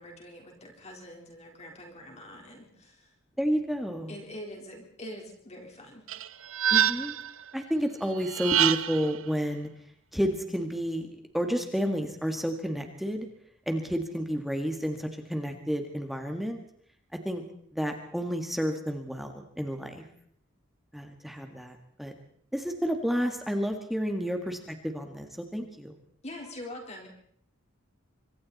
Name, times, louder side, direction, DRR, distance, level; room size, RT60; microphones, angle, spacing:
voice 1, 0.0-3.1 4.1-6.0 26.2-27.1, left 1 dB, 30° left, 1 dB, 3.9 m, -44 dB
voice 2, 3.4-4.1 6.7-7.2 7.5-9.7 10.1-11.1 11.3-13.3 13.6-16.6 17.2-17.4 17.7-20.0 20.9-22.1 22.5-25.9, equal, ahead, 4 dB, 1.8 m, -30 dB
sound 1, 6.1-7.3 8.2-9.1, right 10 dB, 75° right, 0.9 m, -26 dB
25.5 x 24.5 x 4.2 m, 0.62 s
head